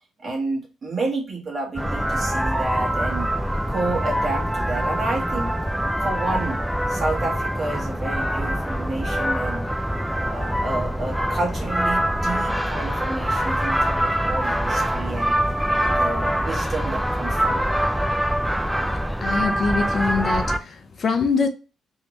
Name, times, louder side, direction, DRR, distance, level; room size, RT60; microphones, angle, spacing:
voice 1, 0.2-3.3 3.7-5.6 6.0-9.7 10.2-15.4 15.8-17.7, right 2 dB, 40° right, 1.5 m, -30 dB
sound 1, 1.8-20.6, equal, ahead, 0.4 m, -24 dB
voice 2, 19.2-21.5, left 4 dB, 45° left, 0.6 m, -24 dB
3.2 x 3.1 x 3.0 m
cardioid pair, 90°, 0 cm